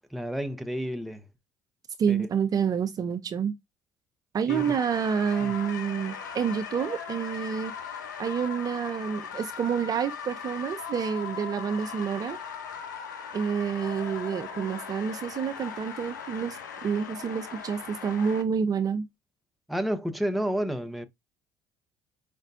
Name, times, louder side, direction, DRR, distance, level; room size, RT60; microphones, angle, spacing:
voice 1, 0.1-1.2 2.1-2.3 4.5-4.6 5.4-5.5 19.7-21.1, equal, ahead, 0.6 m, -30 dB
voice 2, 2.0-3.5 4.3-7.7 8.2-12.4 13.3-19.1, right 7 dB, 40° right, 0.5 m, -28 dB
sound 1, 4.5-18.4, left 7 dB, 85° left, 0.4 m, -39 dB
4.9 x 2.2 x 2.6 m
hypercardioid pair, 60°, 10 cm